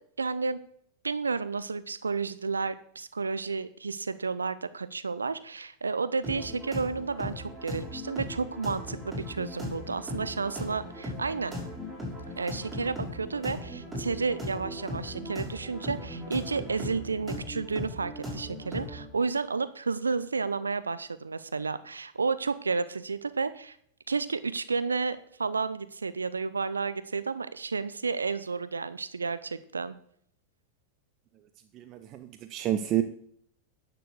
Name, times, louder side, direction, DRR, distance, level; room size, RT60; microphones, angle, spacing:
voice 1, 0.2-0.6 1.0-11.6 12.4-23.8 24.1-29.9, right 4 dB, 75° right, 15 dB, 0.5 m, -31 dB
sound 1, 6.2-19.0, left 1 dB, 10° right, 5.6 m, -38 dB
voice 2, 31.7-33.0, right 12 dB, 35° right, 10 dB, 0.6 m, -29 dB
10.0 x 6.8 x 6.5 m, 0.65 s
figure-of-eight pair, 90°, 0 cm